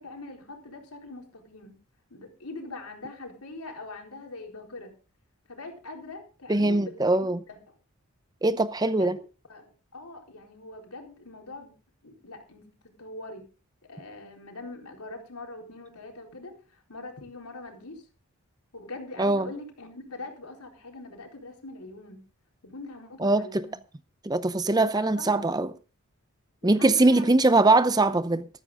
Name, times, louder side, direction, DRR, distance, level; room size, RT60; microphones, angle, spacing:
voice 1, 0.0-1.7 2.1-4.9 5.5-7.6 8.9-9.1 9.5-11.7 12.0-12.7 13.0-13.4 13.9-18.0 18.7-22.2 22.6-23.7 24.7-25.5 26.6-27.3, left 2 dB, 90° left, 4.1 m, -42 dB
voice 2, 6.5-7.4 8.4-9.2 19.2-19.5 23.2-23.7 24.2-25.7 26.6-28.5, right 2 dB, 15° right, 0.6 m, -22 dB
14.0 x 13.5 x 3.7 m
head